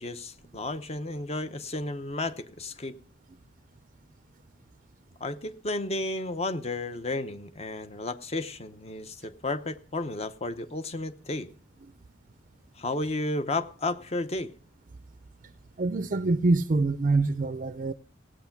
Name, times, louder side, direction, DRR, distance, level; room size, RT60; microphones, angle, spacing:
voice 1, 0.0-2.9 5.2-11.5 12.8-14.5, left 2 dB, 35° left, 0.8 m, -32 dB
voice 2, 15.8-17.9, right 3 dB, 45° right, 0.5 m, -25 dB
16.5 x 8.8 x 5.8 m
head